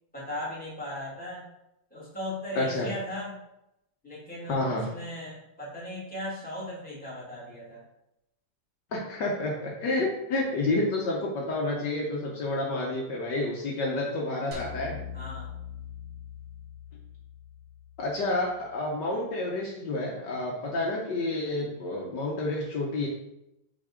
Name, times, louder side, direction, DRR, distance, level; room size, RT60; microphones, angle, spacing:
voice 1, 0.1-1.4 1.9-3.4 4.0-7.8 15.1-15.5, left 1 dB, 5° left, -7 dB, 2.2 m, -38 dB
voice 2, 2.5-2.9 4.5-4.9 8.9-15.0 18.0-23.1, left 2 dB, 65° left, -2 dB, 1.5 m, -29 dB
sound 1, 14.5-18.9, left 7 dB, 75° right, 2.4 m, -42 dB
6.0 x 3.5 x 5.0 m, 0.86 s
omnidirectional pair, 2.1 m